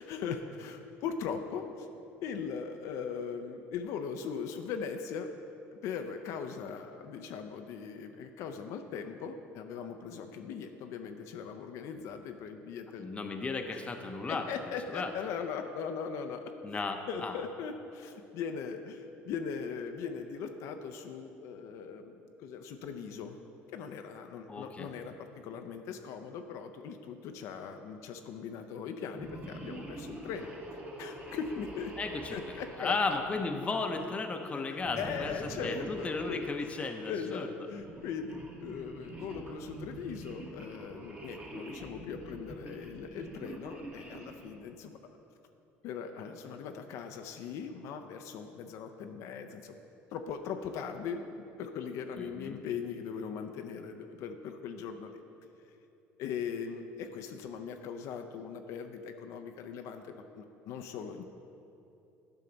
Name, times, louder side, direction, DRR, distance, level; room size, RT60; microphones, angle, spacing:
voice 1, 0.0-1.9 2.2-5.3 5.7-13.1 13.7-13.8 14.3-16.4 17.1-23.4 23.7-30.5 31.0-31.9 32.3-33.0 34.5-36.5 37.0-45.0 45.8-49.8 50.1-55.2 56.2-61.3, left 6 dB, 70° left, 6 dB, 0.5 m, -40 dB
voice 2, 13.0-15.1 16.6-17.4 24.5-24.9 32.0-35.3 35.6-37.5 52.2-52.6, left 3 dB, 25° left, 5 dB, 0.6 m, -35 dB
sound 1, 29.1-33.9 34.8-37.1 37.7-44.6, right 2 dB, 30° right, 1.3 m, -46 dB
10.5 x 5.7 x 3.9 m, 2.8 s
cardioid pair, 110°, 5 cm